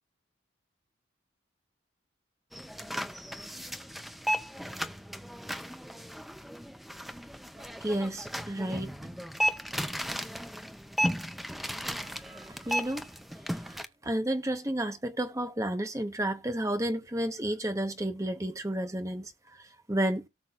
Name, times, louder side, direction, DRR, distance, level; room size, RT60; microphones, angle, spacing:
sound 1, 2.5-13.9, equal, ahead, 0.5 m, -35 dB
voice 1, 7.6-9.2 11.9-13.1 13.6-20.2, right 1 dB, 15° right, 1.0 m, -32 dB
18.0 x 6.2 x 2.4 m
head